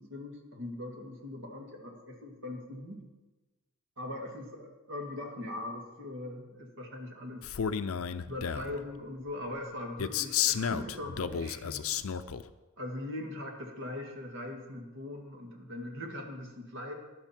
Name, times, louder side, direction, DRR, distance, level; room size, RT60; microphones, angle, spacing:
voice 1, 0.0-3.0 4.0-7.4 8.3-11.9 12.8-16.9, left 1 dB, 55° right, 2 dB, 2.1 m, -40 dB
Male speech man speaking, 7.4-8.8 10.0-12.4, left 8 dB, 65° left, 0.5 m, -32 dB
13.0 x 10.5 x 4.4 m, 1.1 s
head